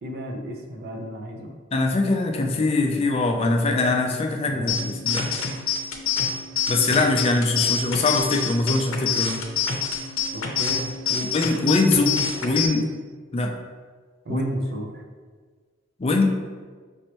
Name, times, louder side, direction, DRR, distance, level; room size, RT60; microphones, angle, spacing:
voice 1, 0.0-1.5 4.0-5.0 6.9-7.7 10.3-11.3 14.2-15.0, equal, 50° right, 2 dB, 0.5 m, -34 dB
voice 2, 1.7-5.3 6.7-9.4 11.3-12.9 13.3-13.5 14.3-14.4 16.0-16.3, left 3 dB, 30° left, 3 dB, 0.4 m, -22 dB
sound 1, 4.7-12.7, left 6 dB, 75° left, 0.6 m, -27 dB
5.2 x 3.2 x 2.9 m, 1.5 s
head